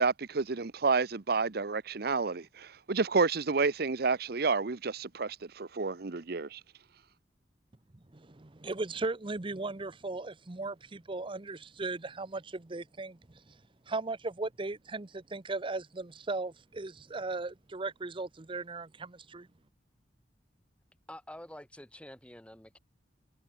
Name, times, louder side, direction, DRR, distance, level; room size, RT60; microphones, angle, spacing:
voice 1, 0.0-6.6, right 4 dB, 60° right, 0.8 m, -30 dB
voice 2, 8.1-13.2 13.5-13.6 13.9-19.5, right 3 dB, 30° right, 0.8 m, -37 dB
voice 3, 21.1-22.8, left 1 dB, 5° left, 4.5 m, -48 dB
head